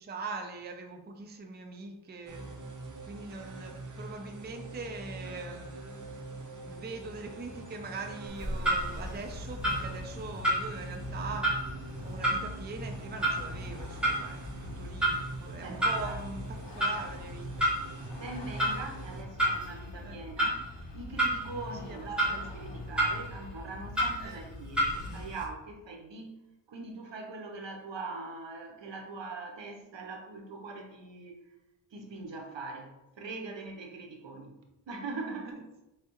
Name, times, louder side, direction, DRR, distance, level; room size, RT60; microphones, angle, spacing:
voice 1, 0.0-2.5 3.0-5.7 6.6-11.6 12.0-17.7 20.0-20.2 21.8-22.4 24.2-24.4, right 3 dB, 25° right, 4 dB, 0.4 m, -42 dB
sound 1, 2.3-19.2, right 2 dB, 40° right, 0.8 m, -44 dB
Vehicle, 7.0-24.2, left 2 dB, 70° left, 0.8 m, -49 dB
Clock, 8.3-25.4, right 1 dB, ahead, 1.5 m, -33 dB
voice 2, 15.6-16.2 18.1-20.7 20.9-31.4 31.9-34.6 34.9-35.6, right 3 dB, 75° right, 2 dB, 0.8 m, -42 dB
4.5 x 3.3 x 2.9 m, 0.95 s
wide cardioid pair, 110°, 44 cm